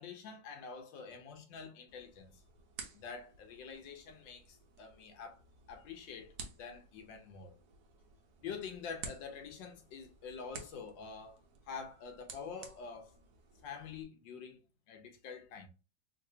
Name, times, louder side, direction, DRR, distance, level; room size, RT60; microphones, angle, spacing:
voice 1, 0.0-2.4 2.9-5.4 5.7-7.6 8.4-11.4 11.7-13.1 13.6-15.7, left 6 dB, 75° left, 1.4 m, -47 dB
sound 1, 1.9-14.0, right 5 dB, 65° right, 1.1 m, -53 dB
3.7 x 2.6 x 2.7 m
omnidirectional pair, 2.1 m